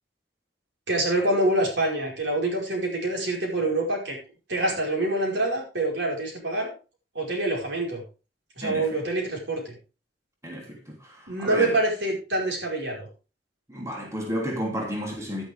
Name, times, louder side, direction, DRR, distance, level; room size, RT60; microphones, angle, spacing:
voice 1, 0.9-4.2 4.5-6.7 7.1-8.0 8.6-9.7 11.3-13.1, right 2 dB, 70° right, 5.0 m, -26 dB
voice 2, 10.4-11.7 13.7-15.4, equal, 15° right, 3.1 m, -32 dB
11.5 x 10.0 x 3.5 m
head